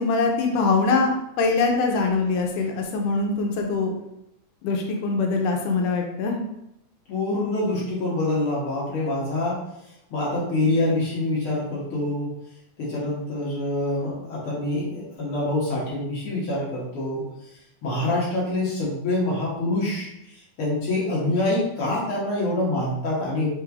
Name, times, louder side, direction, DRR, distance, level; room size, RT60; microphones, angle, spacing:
voice 1, 0.0-3.9 4.6-6.4, left 4 dB, 85° left, 2 dB, 2.1 m, -23 dB
voice 2, 7.1-9.6 10.1-12.3 12.8-17.2 17.8-23.5, left 2 dB, 60° left, -6 dB, 1.5 m, -26 dB
5.7 x 3.2 x 2.3 m, 0.81 s
omnidirectional pair, 3.7 m